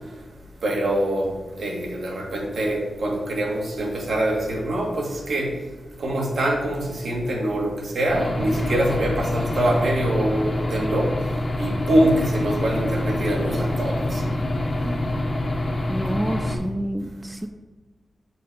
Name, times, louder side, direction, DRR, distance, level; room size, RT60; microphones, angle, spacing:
voice 1, 0.6-1.3 1.6-5.5 6.0-11.1 11.6-14.2, right 1 dB, 70° right, 0 dB, 2.0 m, -24 dB
Aircraft / Engine, 8.1-16.5, left 1 dB, 30° left, 1.2 m, -26 dB
voice 2, 15.9-17.5, right 1 dB, 10° right, 8 dB, 0.4 m, -29 dB
6.7 x 5.0 x 6.8 m, 1.3 s
wide cardioid pair, 125°, 0 cm